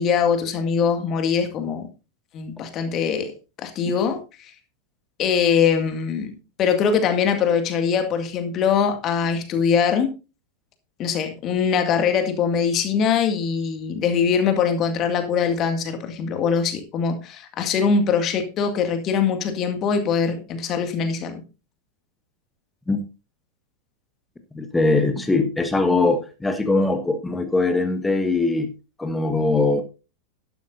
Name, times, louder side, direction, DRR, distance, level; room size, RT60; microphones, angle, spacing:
voice 1, 0.0-1.9 2.3-3.3 3.6-4.5 5.2-6.3 6.6-10.1 11.0-21.4, left 6 dB, 35° left, 7 dB, 2.1 m, -22 dB
voice 2, 24.5-28.7 29.0-29.8, left 3 dB, 10° left, 8 dB, 1.3 m, -21 dB
12.0 x 11.5 x 2.6 m, 0.30 s
figure-of-eight pair, 90°, 0 cm